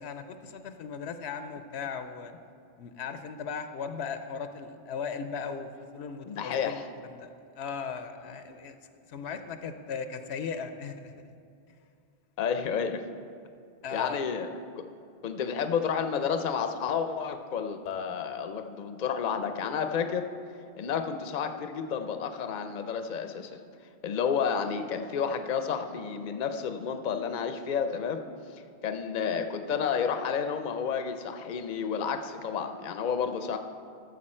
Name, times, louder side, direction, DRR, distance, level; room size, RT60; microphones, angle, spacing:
voice 1, 0.0-2.3 2.8-7.3 7.6-8.8 9.1-11.3 13.8-14.3, left 6 dB, 80° left, 8 dB, 0.9 m, -37 dB
voice 2, 6.3-6.9 8.3-8.4 12.4-13.0 13.9-14.5 15.2-20.3 20.8-23.5 24.0-28.2 28.8-33.6, left 7 dB, 50° left, 7 dB, 0.7 m, -30 dB
13.0 x 6.9 x 4.3 m, 2.4 s
omnidirectional pair, 1.1 m